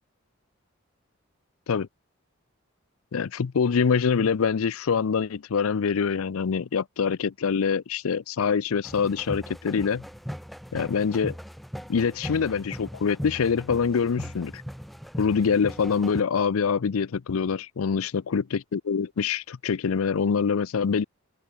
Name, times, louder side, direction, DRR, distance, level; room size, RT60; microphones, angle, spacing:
voice 1, 3.1-10.0 10.7-11.4 11.9-14.6 15.2-21.0, left 6 dB, 85° left, 0.5 m, -25 dB
sound 1, 8.8-16.2, equal, ahead, 5.9 m, -39 dB
open air
head